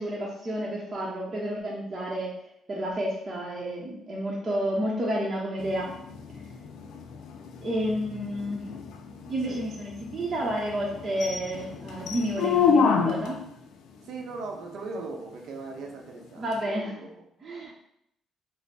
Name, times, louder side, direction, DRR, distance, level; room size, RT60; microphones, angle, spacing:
voice 1, 0.0-2.4 2.7-5.9 7.6-8.6 9.3-13.4 16.4-17.0 17.4-17.7, equal, 40° right, -4 dB, 0.8 m, -30 dB
sound 1, 5.6-13.5 16.5-16.6, left 6 dB, 75° left, 0.3 m, -29 dB
voice 2, 9.2-9.6 14.0-17.2, right 3 dB, 75° right, 1 dB, 0.7 m, -39 dB
3.3 x 2.1 x 4.0 m, 0.74 s
cardioid pair, 80°, 0 cm